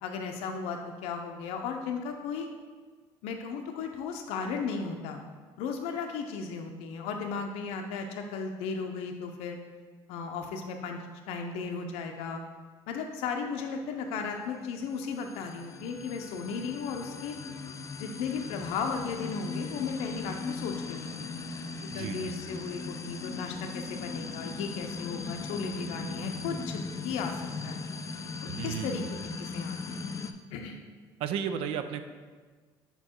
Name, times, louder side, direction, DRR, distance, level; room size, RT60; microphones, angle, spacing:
voice 1, 0.0-2.5 3.2-5.2 5.6-9.6 10.1-11.0 11.3-12.4 12.9-17.4 18.0-21.4 21.9-27.3 27.6-27.8 28.6-29.0 29.4-30.1 30.5-30.8, left 5 dB, 80° left, 4 dB, 0.5 m, -35 dB
sound 1, 14.6-30.3, left 4 dB, 30° left, 0.4 m, -38 dB
voice 2, 21.9-22.4 28.5-29.1 31.2-32.0, right 8 dB, 75° right, 9 dB, 0.5 m, -34 dB
5.3 x 4.5 x 4.3 m, 1.4 s
cardioid pair, 105°, 10 cm